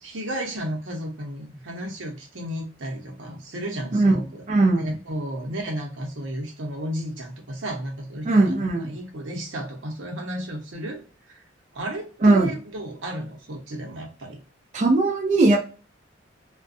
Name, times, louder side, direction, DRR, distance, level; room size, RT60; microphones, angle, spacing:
voice 1, 0.0-11.0 11.3-11.4 11.7-14.4, right 1 dB, 85° right, 1 dB, 0.8 m, -33 dB
voice 2, 4.5-4.9 8.3-8.9 12.2-12.5 14.7-15.6, right 2 dB, 40° right, 0 dB, 0.4 m, -18 dB
2.4 x 2.3 x 2.5 m, 0.35 s
head